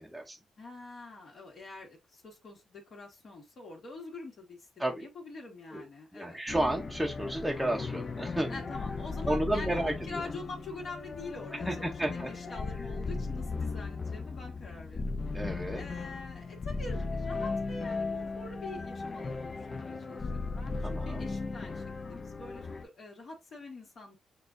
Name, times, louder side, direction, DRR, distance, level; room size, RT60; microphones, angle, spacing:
voice 1, 0.0-0.4 4.8-5.1 5.7-5.8 6.1-8.6 9.3-10.2 11.5-12.3 15.3-15.8 20.8-21.3, right 1 dB, 5° right, 0.7 m, -32 dB
voice 2, 0.6-4.6 4.9-6.4 8.5-15.2 15.8-24.2, left 3 dB, 55° left, 1.8 m, -45 dB
sound 1, 6.5-22.8, left 3 dB, 40° left, 0.5 m, -37 dB
6.5 x 2.4 x 2.6 m
cardioid pair, 95°, 0 cm